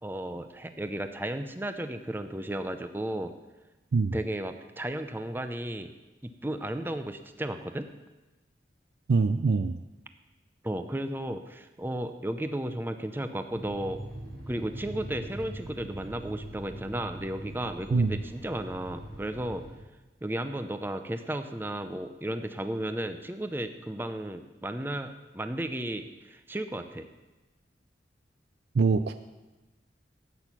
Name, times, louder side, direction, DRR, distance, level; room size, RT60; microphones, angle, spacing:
voice 1, 0.0-3.3 4.1-5.9 6.4-7.9 10.6-14.0 14.5-19.6 20.2-27.1, right 1 dB, 10° right, 8 dB, 0.5 m, -34 dB
voice 2, 9.1-9.8 17.9-18.1 28.7-29.3, right 4 dB, 65° right, 10 dB, 0.4 m, -24 dB
sound 1, 13.5-19.8, right 1 dB, 85° right, 5.1 m, -42 dB
12.5 x 8.8 x 5.9 m, 1.1 s
head